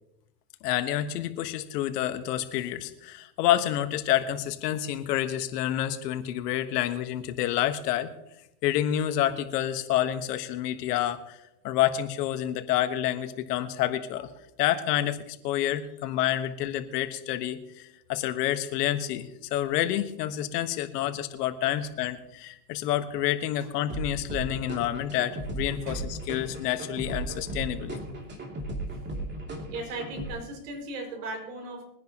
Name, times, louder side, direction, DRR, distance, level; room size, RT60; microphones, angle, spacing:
voice 1, 0.6-8.1 8.6-11.4 11.6-14.3 14.6-28.0, left 12 dB, 70° left, 9 dB, 1.5 m, -28 dB
sound 1, 23.9-30.3, right 1 dB, 20° right, 2.7 m, -36 dB
voice 2, 24.5-25.0 25.8-26.0 28.9-29.0 29.7-31.8, right 2 dB, 70° right, 2 dB, 5.8 m, -38 dB
22.5 x 10.5 x 3.0 m, 0.87 s
supercardioid pair, 130°, 49 cm